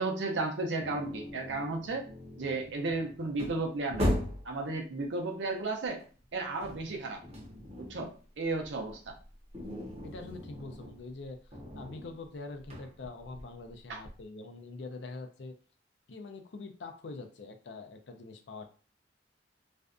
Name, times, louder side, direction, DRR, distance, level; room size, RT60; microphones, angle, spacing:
voice 1, 0.0-2.1 2.4-4.1 4.4-6.0 6.3-7.2 7.8-9.1 13.9-14.0, right 3 dB, 80° right, 2 dB, 0.6 m, -34 dB
sound 1, 0.8-4.6 6.0-8.1 8.4-14.2, left 1 dB, 35° right, 0.7 m, -38 dB
voice 2, 10.0-11.4 11.7-15.5 16.1-18.7, left 3 dB, 70° left, 5 dB, 0.5 m, -44 dB
2.5 x 2.2 x 2.4 m, 0.40 s
head